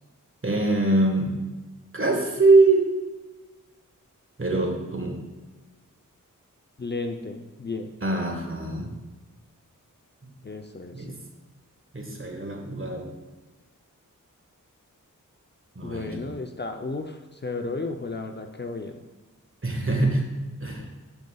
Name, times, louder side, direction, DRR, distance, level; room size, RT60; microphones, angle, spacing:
voice 1, 0.4-1.3 1.9-2.9 4.4-5.2 8.0-8.9 10.9-11.1 11.9-13.1 15.7-16.2 19.6-20.2 20.6-20.9, right 2 dB, 40° right, 2 dB, 1.5 m, -23 dB
voice 2, 6.8-7.9 10.4-11.2 15.8-19.0, left 3 dB, 30° left, 5 dB, 0.5 m, -33 dB
11.5 x 5.3 x 2.3 m, 1.2 s
wide cardioid pair, 55°, 33 cm